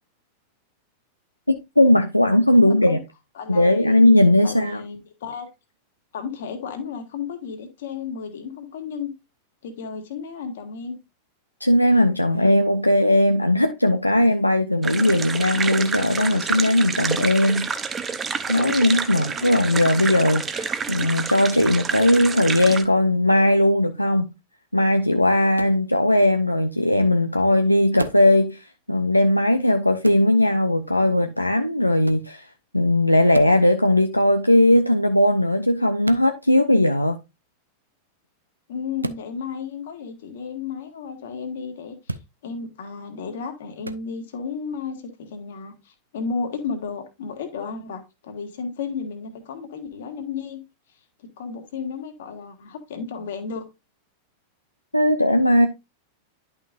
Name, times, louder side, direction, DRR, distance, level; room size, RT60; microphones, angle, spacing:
voice 1, 1.5-3.0 3.5-4.8 11.6-17.7 18.5-24.3 24.7-32.5 32.7-37.2 54.9-55.7, left 1 dB, 85° left, 0.5 m, -18 dB
voice 2, 2.6-3.0 3.4-4.1 4.4-5.5 6.1-9.1 9.6-11.0 19.4-19.5 38.7-50.6 51.2-53.6, left 5 dB, 60° left, 1.9 m, -33 dB
sound 1, 14.8-22.8, right 5 dB, 20° right, 0.8 m, -28 dB
sound 2, 25.5-25.8 28.0-28.3 30.0-30.3 32.0-32.3 33.3-33.6 36.0-36.3 39.0-39.3 42.0-42.3 43.8-44.0, right 2 dB, 80° right, 0.5 m, -31 dB
11.0 x 5.8 x 2.5 m
figure-of-eight pair, 90°, 0 cm